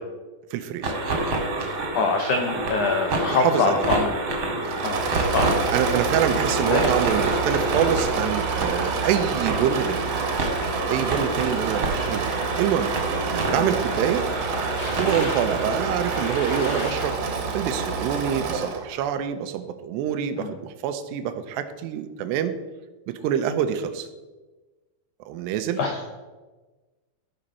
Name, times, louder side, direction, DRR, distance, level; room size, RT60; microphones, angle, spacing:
voice 1, 0.5-0.9 3.3-3.8 4.6-4.8 5.7-10.1 10.9-14.3 15.0-17.2 17.5-22.6 23.1-24.1 25.3-25.8, right 9 dB, 85° right, 9 dB, 2.8 m, -26 dB
sound 1, 0.8-16.9, right 2 dB, 45° right, 1.8 m, -28 dB
voice 2, 1.9-4.5 4.8-5.7 6.7-6.9 11.9-12.1 13.6-13.7 20.4-20.5 25.8-26.1, left 4 dB, 85° left, 3 dB, 1.7 m, -25 dB
Engine / Mechanisms, 4.6-18.9, right 5 dB, 65° right, 2.3 m, -28 dB
sound 2, 8.1-17.7, left 4 dB, 60° left, 2.2 m, -42 dB
15.5 x 5.2 x 5.6 m, 1.2 s
omnidirectional pair, 4.8 m